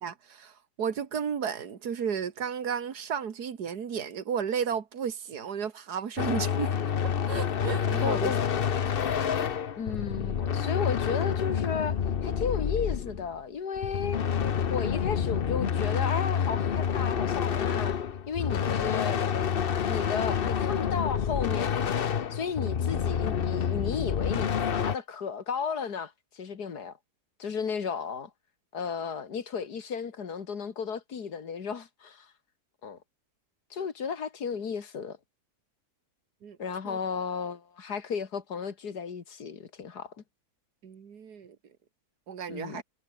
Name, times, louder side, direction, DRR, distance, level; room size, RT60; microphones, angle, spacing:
voice 1, 0.0-6.7 7.3-8.3 36.4-36.6 36.8-37.0 40.8-41.6 42.3-42.8, right 7 dB, 80° right, 2.2 m, -33 dB
sound 1, 6.2-13.3 13.8-25.0, left 7 dB, 45° left, 0.9 m, -28 dB
voice 2, 8.0-8.4 9.8-14.2 14.7-18.0 18.3-19.2 19.9-22.0 22.3-27.0 27.4-28.3 28.7-32.3 32.8-33.0 33.7-35.2 36.6-40.1 42.5-42.8, left 6 dB, 80° left, 2.4 m, -34 dB
omnidirectional pair, 1.7 m